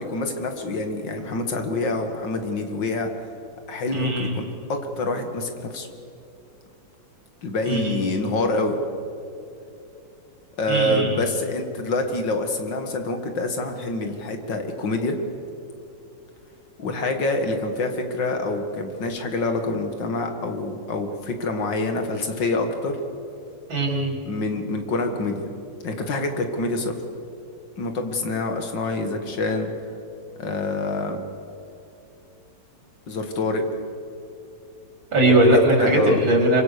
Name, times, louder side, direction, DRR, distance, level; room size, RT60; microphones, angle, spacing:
voice 1, 0.0-3.1 3.7-4.4 4.7-5.9 7.4-8.8 10.6-15.2 16.8-23.0 24.3-25.5 25.8-26.9 27.8-29.7 30.4-31.2 33.1-33.6 35.5-36.2, left 2 dB, 70° left, 5 dB, 2.6 m, -26 dB
voice 2, 3.9-4.4 7.7-8.1 10.7-11.2 23.7-24.2 35.1-36.6, right 1 dB, 85° right, -1 dB, 5.2 m, -19 dB
26.0 x 24.0 x 6.8 m, 2.7 s
omnidirectional pair, 2.0 m